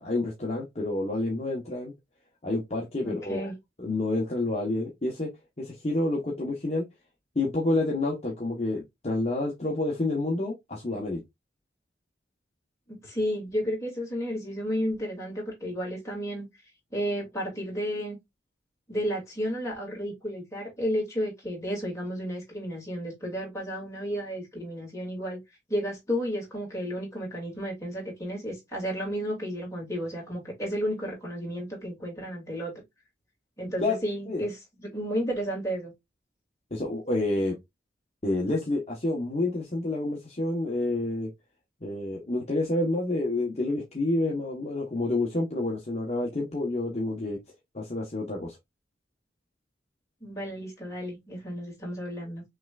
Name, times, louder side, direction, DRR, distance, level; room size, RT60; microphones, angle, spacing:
voice 1, 0.0-1.9 2.4-3.5 3.8-5.3 5.6-6.9 7.3-11.2 33.8-34.0 34.3-34.5 36.7-37.6 38.2-41.3 41.8-47.4 47.7-48.6, left 2 dB, 35° left, 1.0 m, -28 dB
voice 2, 3.0-3.5 13.0-16.5 16.9-18.2 18.9-25.4 25.7-32.7 33.6-35.9 50.2-52.4, equal, 15° left, 2.3 m, -32 dB
5.8 x 3.2 x 2.4 m
head